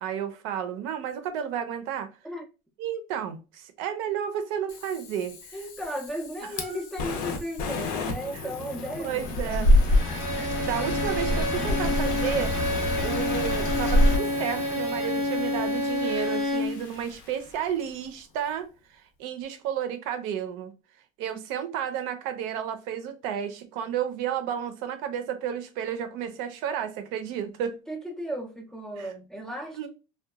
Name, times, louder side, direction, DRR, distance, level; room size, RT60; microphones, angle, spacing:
voice 1, 0.0-2.1 2.8-5.6 6.4-6.8 8.3-8.5 9.0-9.7 10.6-20.7 21.2-27.8 29.0-29.1 29.8-29.9, right 9 dB, 70° right, 0.5 m, -32 dB
Fire, 4.7-17.8, left 4 dB, 55° left, 0.5 m, -37 dB
voice 2, 5.5-9.7 27.9-29.9, equal, 5° left, 0.3 m, -35 dB
sound 1, 9.2-14.2, left 1 dB, 80° left, 0.9 m, -24 dB
Bowed string instrument, 9.9-16.8, left 1 dB, 20° right, 0.7 m, -29 dB
2.8 x 2.2 x 2.3 m
cardioid pair, 160°, 18 cm